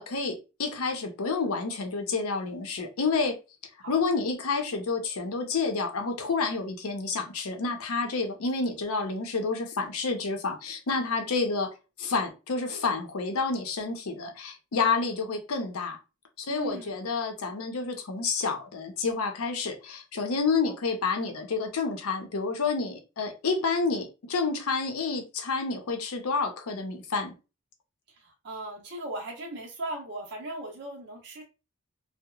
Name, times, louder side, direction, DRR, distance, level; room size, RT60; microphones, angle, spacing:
voice 1, 0.0-3.4 3.9-16.0 16.4-27.3, left 4 dB, 80° left, 0.6 m, -29 dB
voice 2, 16.5-17.0 28.1-31.4, right 1 dB, 50° right, 0.6 m, -38 dB
2.8 x 2.0 x 2.3 m
head